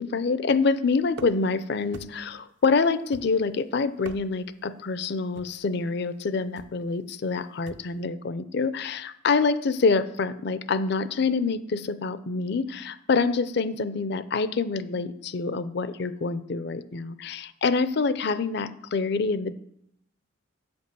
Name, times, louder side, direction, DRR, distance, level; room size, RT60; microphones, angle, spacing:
voice 1, 0.0-19.5, left 4 dB, 60° left, 14 dB, 0.5 m, -26 dB
sound 1, 1.1-1.6 1.9-2.4 3.1-3.6 3.9-4.6 5.3-5.7 6.6-6.8 7.7-8.0, right 3 dB, 60° right, 0.5 m, -44 dB
8.4 x 5.3 x 6.8 m, 0.76 s
head